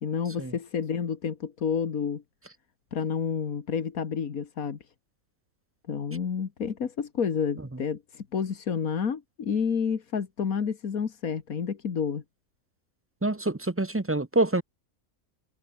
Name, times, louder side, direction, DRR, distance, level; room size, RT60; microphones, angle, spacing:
voice 1, 0.0-2.2 2.9-4.8 5.9-12.2, left 6 dB, 80° left, 2.1 m, -30 dB
voice 2, 13.2-14.6, right 2 dB, 15° right, 0.6 m, -26 dB
omnidirectional pair, 1.5 m